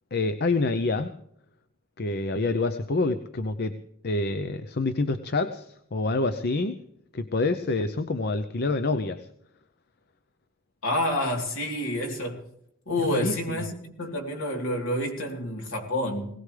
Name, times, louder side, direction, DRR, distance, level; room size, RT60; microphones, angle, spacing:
voice 1, 0.1-1.2 2.0-3.8 4.0-6.8 7.1-9.2 13.1-13.6, left 3 dB, 50° left, 0.7 m, -27 dB
voice 2, 10.8-12.5 12.9-16.3, left 1 dB, 70° left, 3.5 m, -28 dB
21.5 x 17.5 x 3.4 m
head